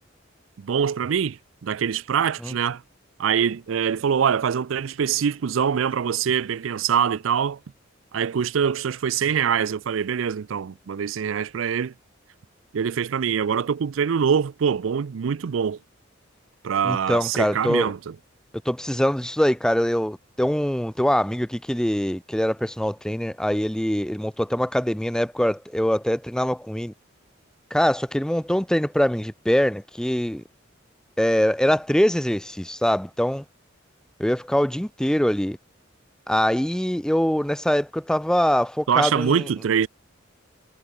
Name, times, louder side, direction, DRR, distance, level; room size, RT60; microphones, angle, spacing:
voice 1, 0.6-2.8 3.2-7.6 8.1-11.9 12.7-15.8 16.6-18.1 38.9-39.9, right 7 dB, 80° right, 0.4 m, -24 dB
voice 2, 16.8-17.9 18.6-26.9 27.7-30.4 31.2-33.4 34.2-35.6 36.3-39.5, equal, 5° left, 0.6 m, -23 dB
head